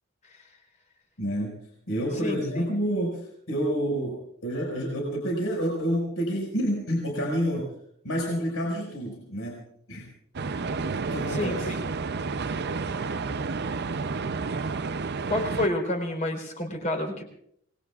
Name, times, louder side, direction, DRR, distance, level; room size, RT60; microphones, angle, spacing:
voice 1, 1.2-1.5 1.9-3.2 3.5-7.7 8.0-9.6 9.9-10.1 11.1-11.7, equal, 65° left, -2 dB, 5.6 m, -28 dB
voice 2, 2.2-2.6 11.3-11.8 15.3-17.2, left 1 dB, 35° left, 3 dB, 4.1 m, -29 dB
sound 1, 10.3-15.7, right 4 dB, 45° right, 0.6 m, -30 dB
28.5 x 21.0 x 2.5 m, 0.69 s
head